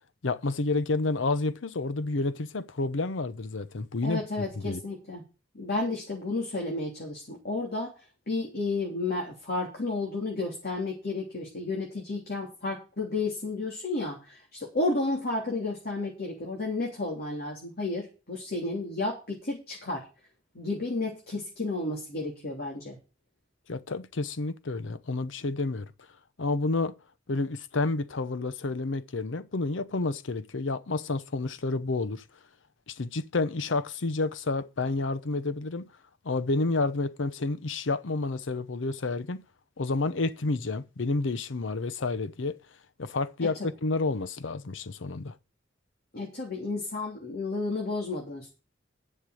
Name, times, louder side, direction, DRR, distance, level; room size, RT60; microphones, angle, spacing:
voice 1, 0.2-4.8 23.7-25.9 26.4-26.9 27.3-32.2 32.9-35.9 36.2-39.4 39.8-42.5 43.0-45.3, left 3 dB, 75° left, 0.7 m, -30 dB
voice 2, 4.0-5.2 5.5-20.1 20.5-23.0 43.6-43.7 46.1-48.5, left 2 dB, 55° left, 3.1 m, -32 dB
10.5 x 6.7 x 6.4 m
head